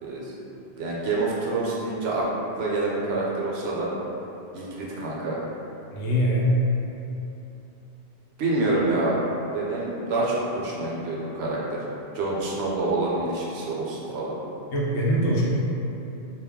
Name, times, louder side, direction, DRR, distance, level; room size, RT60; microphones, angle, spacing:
voice 1, 0.0-0.3 0.8-2.3 2.5-3.9 4.5-5.4 8.4-9.2 9.5-11.8 12.1-14.3, right 2 dB, 70° right, -5 dB, 0.8 m, -27 dB
voice 2, 5.9-6.6 14.7-15.4, equal, 85° left, -5 dB, 0.9 m, -22 dB
2.3 x 2.1 x 3.5 m, 2.9 s
omnidirectional pair, 1.1 m